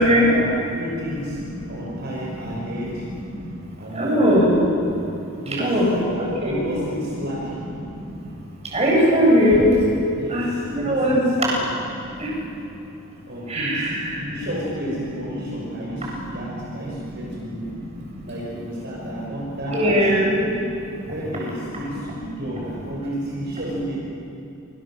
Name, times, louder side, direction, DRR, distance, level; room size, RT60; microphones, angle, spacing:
voice 1, 0.3-1.4 1.7-3.1 3.8-4.2 5.4-6.1 6.5-7.7 10.1-11.6 13.3-13.9 14.2-17.7 18.2-20.3 21.1-24.0, equal, 50° right, -4 dB, 6.2 m, -31 dB
voice 2, 3.9-4.5 5.6-5.9 6.2-6.6 8.7-9.7 10.3-10.4 10.7-11.2 13.5-14.1 19.7-20.4, equal, 30° right, -3 dB, 8.0 m, -18 dB
28.5 x 26.0 x 7.5 m, 2.9 s
head